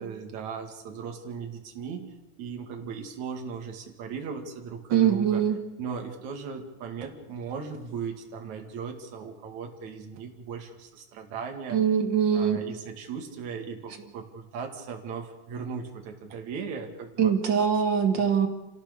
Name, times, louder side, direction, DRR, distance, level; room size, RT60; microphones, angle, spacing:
voice 1, 0.0-2.1 2.4-5.4 5.8-11.8 12.3-17.3 18.1-18.3, right 6 dB, 60° right, 3 dB, 3.4 m, -37 dB
voice 2, 4.9-5.6 11.7-12.6 17.2-18.5, right 8 dB, 40° right, 5 dB, 2.2 m, -23 dB
27.5 x 16.5 x 6.9 m, 1.0 s
omnidirectional pair, 3.9 m